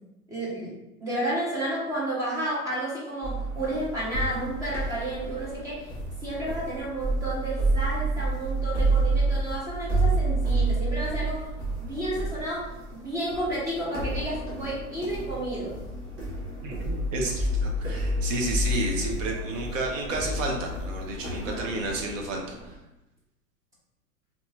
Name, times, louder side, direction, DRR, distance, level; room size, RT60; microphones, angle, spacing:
voice 1, 0.3-5.9 6.2-11.5 11.8-15.8 21.4-21.7, right 1 dB, 10° right, -7 dB, 0.3 m, -31 dB
sound 1, 3.2-22.7, right 2 dB, 30° right, 1.1 m, -29 dB
voice 2, 16.6-22.8, right 2 dB, 60° right, 1 dB, 0.8 m, -31 dB
2.7 x 2.3 x 2.7 m, 0.95 s
hypercardioid pair, 115°, 45 cm